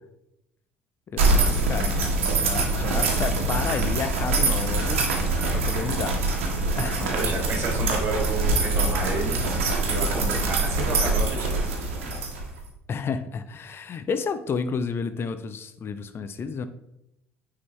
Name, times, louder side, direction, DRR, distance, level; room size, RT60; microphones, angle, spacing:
voice 1, 1.1-5.2 5.5-6.1 6.7-7.2 8.6-8.7 12.9-16.7, left 5 dB, 35° left, 10 dB, 0.5 m, -31 dB
sound 1, 1.2-12.7, right 2 dB, 75° right, 1.1 m, -24 dB
voice 2, 7.0-11.6, right 2 dB, 35° right, 0 dB, 2.1 m, -31 dB
9.3 x 3.8 x 3.2 m, 0.82 s
figure-of-eight pair, 55°, 7 cm